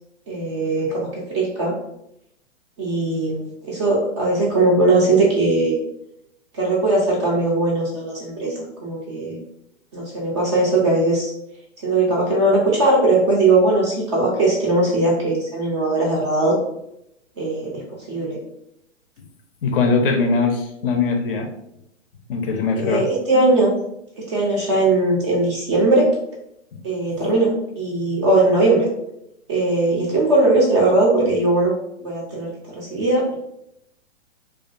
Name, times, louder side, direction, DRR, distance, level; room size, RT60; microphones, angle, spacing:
voice 1, 0.3-1.8 2.8-5.8 6.5-8.5 8.8-9.4 9.9-11.3 11.8-16.6 17.4-18.4 22.8-23.7 24.2-26.1 26.8-28.9 29.5-31.7 32.0-33.3, right 2 dB, 25° right, -3 dB, 0.4 m, -19 dB
voice 2, 19.6-21.5 22.3-23.1 26.7-26.8, left 4 dB, 45° left, 4 dB, 0.5 m, -21 dB
2.3 x 2.2 x 2.4 m, 0.79 s
hypercardioid pair, 125°, 37 cm